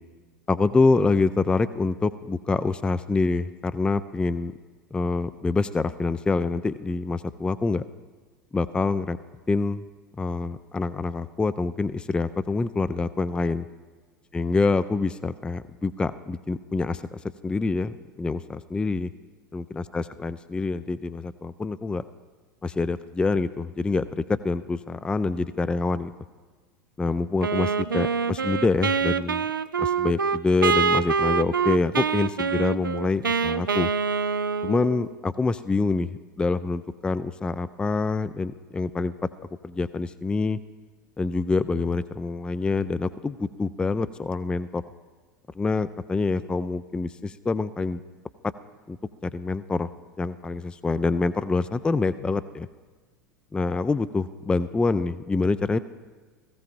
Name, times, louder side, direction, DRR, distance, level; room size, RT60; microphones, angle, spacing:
voice 1, 0.5-4.5 4.9-7.8 8.5-9.2 9.5-9.8 10.2-13.7 14.3-19.1 19.5-22.0 22.6-26.1 27.0-29.4 29.8-33.9 34.6-39.1 39.6-40.6 41.2-44.8 45.6-48.0 48.9-49.0 49.2-49.9 50.2-52.7 53.5-55.8, left 3 dB, 10° left, 13 dB, 0.3 m, -26 dB
Wind instrument woodwind instrument, 27.4-35.1, right 5 dB, 85° right, 0.4 m, -25 dB
17.0 x 15.0 x 2.6 m, 1.4 s
figure-of-eight pair, 85°, 11 cm